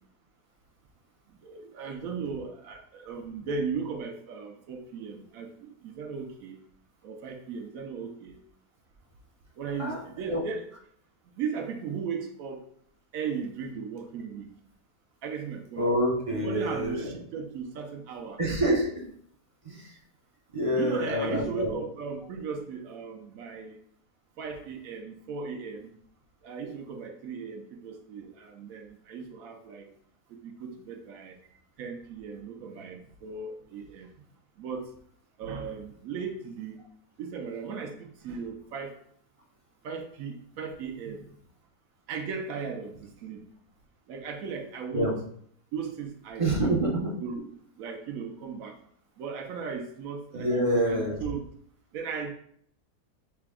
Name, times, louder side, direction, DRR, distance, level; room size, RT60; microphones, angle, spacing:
voice 1, 1.3-6.6 7.0-8.4 9.6-10.7 11.4-12.6 13.1-14.5 15.2-15.9 16.3-18.4 20.7-23.8 24.4-25.9 26.4-29.9 30.3-31.4 31.8-34.1 34.6-34.9 35.4-36.8 37.2-38.9 39.8-41.2 42.1-43.4 44.1-45.1 45.7-46.9 47.2-47.5 47.8-48.8 49.2-51.4 51.9-52.3, right 5 dB, 65° right, 4 dB, 0.9 m, -37 dB
voice 2, 15.8-17.0 18.4-19.0 19.6-19.9 20.5-21.7 44.9-45.1 46.4-47.1 50.3-51.1, equal, 35° right, -3 dB, 0.5 m, -27 dB
5.8 x 2.2 x 3.5 m, 0.63 s
omnidirectional pair, 1.7 m